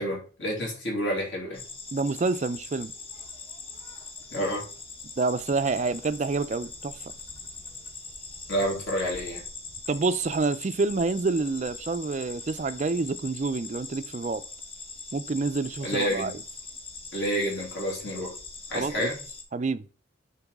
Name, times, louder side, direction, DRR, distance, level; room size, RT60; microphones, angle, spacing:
voice 1, 0.0-1.6 4.3-4.6 8.5-9.4 15.8-16.3 17.1-18.3 18.7-19.2, equal, 60° left, 2.9 m, -29 dB
sound 1, 1.5-19.4, left 3 dB, 25° left, 0.9 m, -42 dB
voice 2, 1.9-2.9 5.2-7.1 9.9-14.4 15.1-16.3 18.7-19.1 19.5-19.8, right 3 dB, 35° right, 0.3 m, -28 dB
6.9 x 4.6 x 3.6 m
head